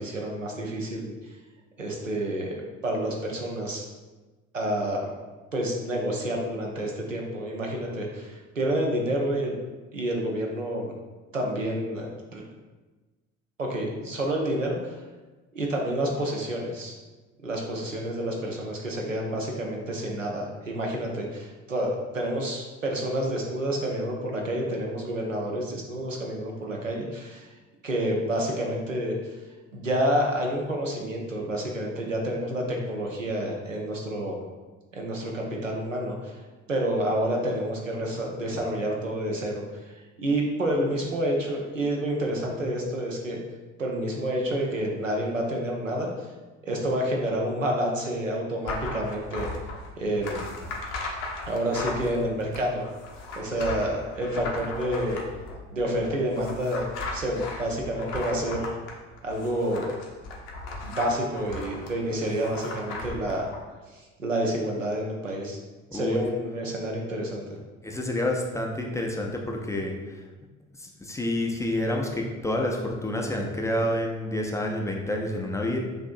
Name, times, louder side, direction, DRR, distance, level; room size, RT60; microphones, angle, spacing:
voice 1, 0.0-1.4 1.8-3.9 4.5-5.1 5.5-9.5 9.9-10.9 11.3-12.4 13.6-15.0 15.5-16.9 17.4-27.5 27.8-29.4 29.7-34.4 34.9-36.4 36.7-43.4 43.8-46.3 46.6-49.5 49.9-50.5 51.5-52.9 53.3-55.2 55.7-58.7 59.2-59.9 60.8-63.5 63.9-65.6 65.9-67.6, right 1 dB, 90° right, 0 dB, 0.6 m, -29 dB
sound 1, 48.7-63.6, left 2 dB, 60° left, 0.8 m, -37 dB
voice 2, 67.8-70.2 70.7-75.8, left 1 dB, 10° left, 0 dB, 0.4 m, -28 dB
6.5 x 2.6 x 2.5 m, 1.2 s
figure-of-eight pair, 55°, 37 cm